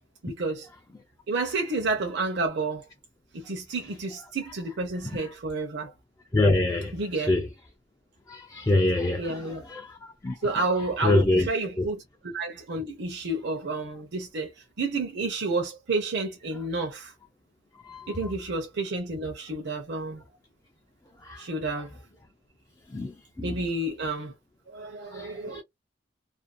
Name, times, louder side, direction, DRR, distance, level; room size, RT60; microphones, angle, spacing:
voice 1, 0.2-0.7 1.3-2.9 3.3-5.9 6.9-7.3 9.2-9.6 10.4-14.5 14.8-17.1 18.1-20.2 21.4-22.0 23.4-24.3 24.7-25.6, right 3 dB, 65° right, 0.7 m, -30 dB
voice 2, 6.3-6.9 7.3-7.5 8.3-9.4 9.7-10.3 11.0-11.5 11.8-11.9 17.9-18.0 21.3-21.4 22.9-23.1 23.4-23.5 25.1-25.6, left 2 dB, 15° left, 0.4 m, -24 dB
2.5 x 2.3 x 2.4 m
head